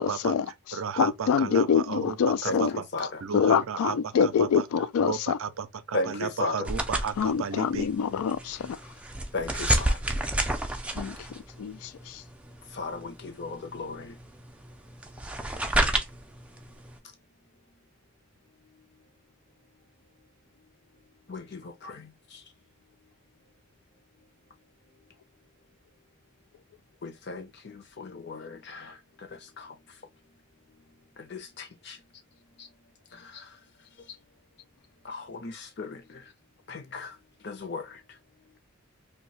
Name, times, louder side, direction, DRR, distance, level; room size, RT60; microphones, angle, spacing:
voice 1, 0.0-2.8 3.3-5.4 7.2-8.8 10.9-12.2, left 7 dB, 80° left, 0.3 m, -26 dB
voice 2, 0.7-4.7 5.0-7.9, right 6 dB, 65° right, 0.5 m, -33 dB
voice 3, 2.5-3.2 5.9-6.7 9.3-10.0 12.7-14.2 21.3-22.4 27.0-30.0 31.2-32.0 32.6-32.7 33.1-33.6 34.0-34.2 35.0-36.3 36.7-38.2, left 3 dB, 50° left, 0.7 m, -37 dB
sound 1, 6.6-17.0, right 1 dB, 5° right, 0.3 m, -31 dB
2.7 x 2.3 x 4.0 m
head